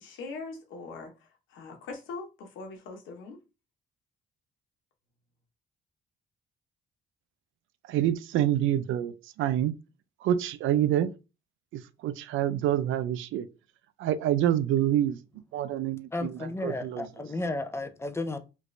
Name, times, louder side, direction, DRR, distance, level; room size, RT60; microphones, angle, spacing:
voice 1, 0.0-3.4, left 3 dB, 80° left, 1.0 m, -42 dB
voice 2, 7.9-9.7 10.2-11.1 11.7-13.5 14.0-15.2 15.5-17.1, right 11 dB, 80° right, 0.4 m, -27 dB
voice 3, 16.1-18.4, left 2 dB, 15° left, 0.5 m, -33 dB
3.2 x 2.5 x 3.2 m
cardioid pair, 90°, 20 cm